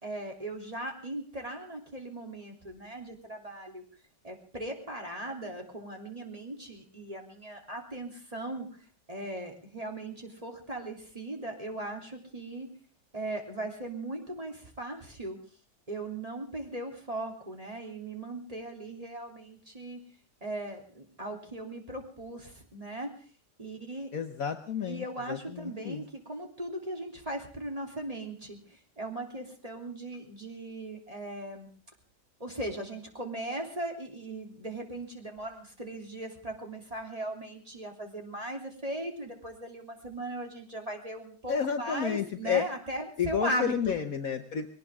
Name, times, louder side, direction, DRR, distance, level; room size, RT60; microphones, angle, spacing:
voice 1, 0.0-3.8 4.2-12.7 13.1-15.4 15.9-20.0 20.4-23.1 23.6-24.1 24.9-31.7 32.4-44.0, right 1 dB, 20° right, 2 dB, 3.2 m, -38 dB
voice 2, 24.1-26.0 41.5-42.7 43.2-44.7, left 8 dB, 55° left, 7 dB, 1.3 m, -31 dB
22.0 x 18.0 x 3.6 m, 0.38 s
omnidirectional pair, 1.9 m